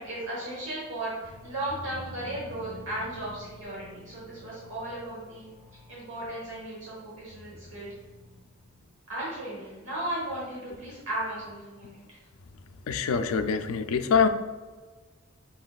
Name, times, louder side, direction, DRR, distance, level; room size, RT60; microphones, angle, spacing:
voice 1, 0.0-5.5 5.9-7.9 9.1-12.0, right 1 dB, 65° right, -6 dB, 1.1 m, -35 dB
sound 1, 1.2-8.9, equal, 35° right, 1.3 m, -49 dB
voice 2, 12.9-14.3, left 6 dB, 75° left, 10 dB, 0.4 m, -24 dB
5.6 x 4.0 x 2.3 m, 1.3 s
head